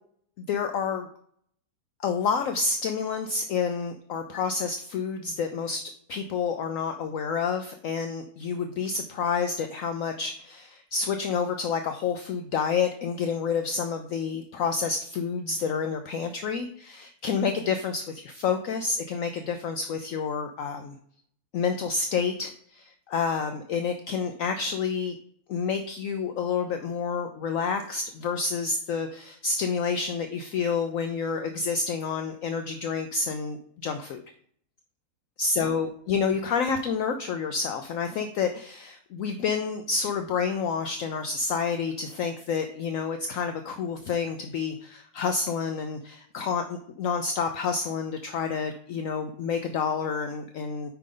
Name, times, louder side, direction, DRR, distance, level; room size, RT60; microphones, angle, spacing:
voice 1, 0.4-1.1 2.0-20.9 21.5-25.2 25.5-33.6 33.8-34.2 35.4-50.9, left 5 dB, 70° left, 7 dB, 0.9 m, -29 dB
7.4 x 5.1 x 3.8 m, 0.62 s
omnidirectional pair, 1.7 m